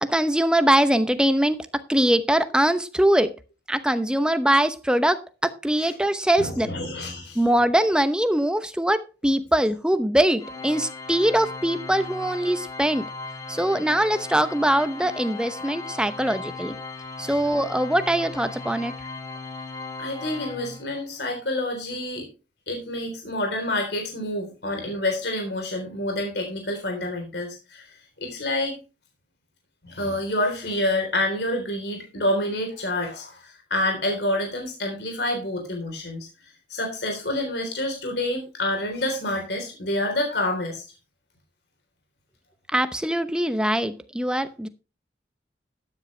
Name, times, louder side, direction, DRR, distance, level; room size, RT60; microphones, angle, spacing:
voice 1, 0.0-1.6 1.9-3.3 3.7-6.7 7.3-13.0 13.5-16.7 17.2-18.9 42.7-44.7, right 1 dB, 5° right, 10 dB, 0.8 m, -22 dB
voice 2, 6.4-7.4 17.2-17.3 20.0-22.3 22.7-27.8 28.2-28.8 29.8-36.3 36.7-40.8, left 1 dB, 70° left, 2 dB, 3.7 m, -28 dB
Organ, 10.4-21.2, left 3 dB, 20° left, 2.0 m, -37 dB
13.0 x 9.7 x 3.3 m, 0.30 s
head